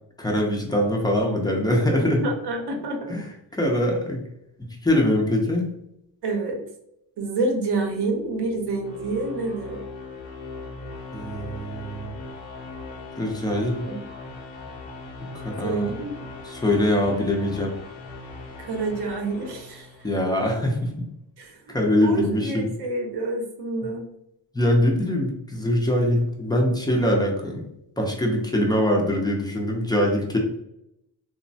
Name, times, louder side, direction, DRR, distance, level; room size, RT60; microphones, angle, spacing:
voice 1, 0.2-2.2 3.1-4.2 4.6-5.7 11.1-12.1 13.2-13.9 15.3-15.9 16.4-17.7 20.0-20.9 21.7-22.7 24.5-27.7 28.0-30.4, left 1 dB, 10° left, 0 dB, 0.4 m, -23 dB
voice 2, 2.0-3.2 6.2-6.6 7.2-9.8 13.8-14.0 15.6-16.1 18.6-19.9 21.4-21.7 22.0-24.0, right 3 dB, 60° right, 3 dB, 0.7 m, -28 dB
sound 1, 7.3-20.4, left 3 dB, 70° left, 0.8 m, -39 dB
2.9 x 2.1 x 2.6 m, 0.80 s
cardioid pair, 125°, 46 cm